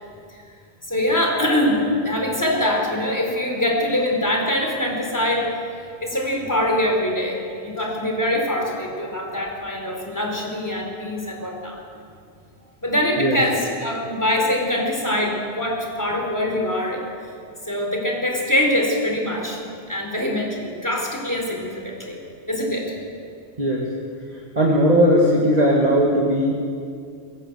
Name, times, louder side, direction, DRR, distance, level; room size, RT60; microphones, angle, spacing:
voice 1, 0.9-5.6 6.0-11.8 12.8-17.1 17.6-22.2 22.5-22.9, left 1 dB, 15° left, 0 dB, 4.0 m, -23 dB
voice 2, 24.6-26.5, equal, 35° right, -3 dB, 2.2 m, -17 dB
23.5 x 16.0 x 8.0 m, 2.4 s
omnidirectional pair, 1.2 m